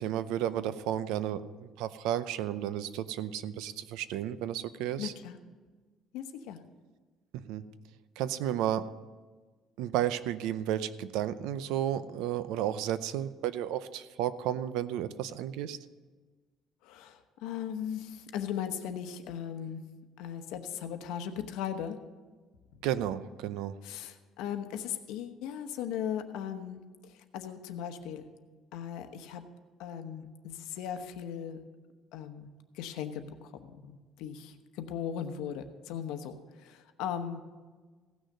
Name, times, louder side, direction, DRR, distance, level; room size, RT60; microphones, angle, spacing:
voice 1, 0.0-1.4 1.8-5.1 7.3-7.7 8.2-8.9 9.8-15.8 22.8-23.8, right 11 dB, 80° right, 14 dB, 0.6 m, -32 dB
voice 2, 5.0-5.4 6.1-6.6 16.8-19.8 20.2-22.0 23.8-28.3 28.7-29.4 29.8-31.6 32.1-37.4, left 9 dB, 80° left, 7 dB, 1.0 m, -38 dB
16.0 x 6.4 x 6.6 m, 1.4 s
cardioid pair, 175°, 0 cm